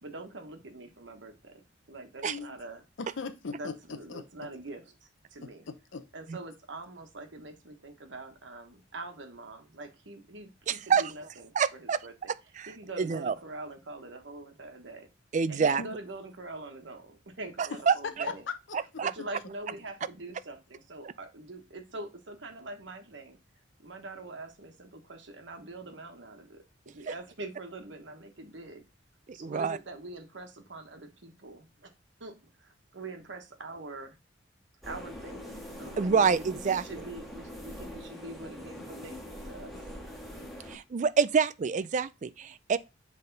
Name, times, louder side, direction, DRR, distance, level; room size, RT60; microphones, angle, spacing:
voice 1, 0.0-2.8 3.5-5.6 6.1-12.1 12.7-15.1 15.5-18.4 19.0-23.4 23.8-28.8 29.3-31.9 32.2-34.2 34.8-39.7, right 2 dB, 75° right, 1.2 m, -44 dB
voice 2, 3.0-4.2 5.4-6.0 15.8-15.9 17.7-17.8 18.0-18.3 18.7-19.0, left 4 dB, 85° left, 0.6 m, -39 dB
voice 3, 10.7-11.0 11.6-12.0 12.6-12.7 13.0-13.3 15.3-15.8 17.6-17.9 19.0-19.1 27.1-27.2 29.4-29.8 36.0-36.8 40.7-42.8, right 6 dB, 40° right, 0.4 m, -26 dB
sound 1, 34.8-40.8, left 1 dB, ahead, 1.5 m, -43 dB
7.8 x 3.5 x 3.9 m
head